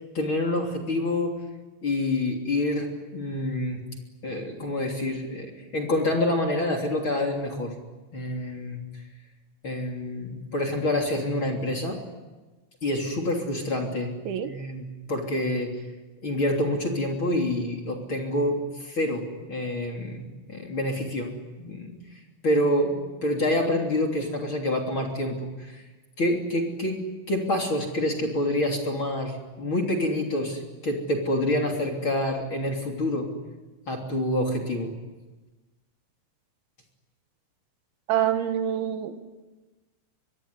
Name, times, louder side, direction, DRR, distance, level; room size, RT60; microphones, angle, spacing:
voice 1, 0.1-1.3 1.8-3.8 4.2-5.5 5.7-7.7 8.1-8.8 9.6-12.0 12.8-14.1 14.4-15.8 16.2-22.0 22.4-25.8 26.2-27.0 27.3-33.3 33.9-34.9, left 1 dB, 30° left, 1 dB, 3.3 m, -27 dB
voice 2, 38.1-39.2, right 10 dB, 80° right, 8 dB, 3.8 m, -26 dB
25.5 x 21.5 x 9.8 m, 1.2 s
omnidirectional pair, 5.4 m